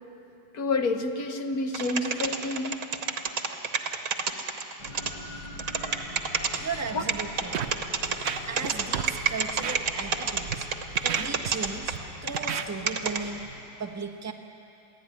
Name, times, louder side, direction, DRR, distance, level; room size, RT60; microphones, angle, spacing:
voice 1, 0.5-2.8 6.9-7.0, left 3 dB, 55° left, 6 dB, 1.5 m, -28 dB
sound 1, 1.7-5.1 5.6-6.6 7.1-12.6 12.9-13.2, right 6 dB, 50° right, 1.4 m, -28 dB
sound 2, 4.8-13.6, left 1 dB, 85° left, 3.7 m, -43 dB
voice 2, 6.5-7.8 8.4-10.7 11.0-13.4 13.8-14.3, right 5 dB, 15° right, 3 dB, 0.6 m, -36 dB
Scratching (performance technique), 7.5-7.7 8.1-8.7 8.9-9.1 9.6-9.8 10.3-10.5 11.0-12.0 12.3-12.7, right 8 dB, 85° right, 0.5 m, -33 dB
23.0 x 15.5 x 9.8 m, 2.8 s
omnidirectional pair, 2.2 m